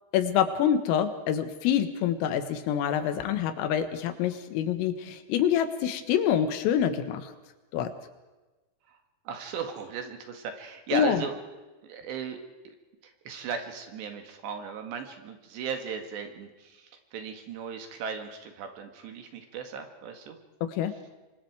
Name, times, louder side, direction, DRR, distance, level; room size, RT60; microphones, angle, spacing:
voice 1, 0.1-7.3 7.7-7.9 10.9-11.2 20.8-20.9, left 9 dB, 90° left, 9 dB, 4.1 m, -26 dB
voice 2, 9.3-11.3 11.8-12.4 12.7-12.8 13.0-20.4, right 6 dB, 65° right, 6 dB, 3.7 m, -37 dB
26.5 x 24.0 x 4.8 m, 1.1 s
omnidirectional pair, 5.8 m